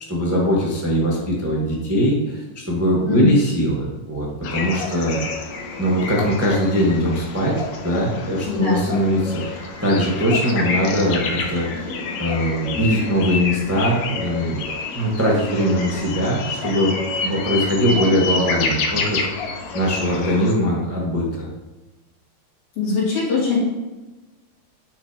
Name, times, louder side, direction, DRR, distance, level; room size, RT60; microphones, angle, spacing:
voice 1, 0.1-5.4 5.8-7.5 7.8-11.9 12.2-16.9 17.2-19.3 19.7-21.5, equal, 10° right, -4 dB, 0.6 m, -21 dB
voice 2, 3.0-3.3 8.5-8.8 22.8-23.6, left 4 dB, 85° left, -7 dB, 4.3 m, -20 dB
sound 1, 4.4-20.5, left 4 dB, 70° left, 2.0 m, -28 dB
9.7 x 6.0 x 2.9 m, 1.2 s
omnidirectional pair, 3.4 m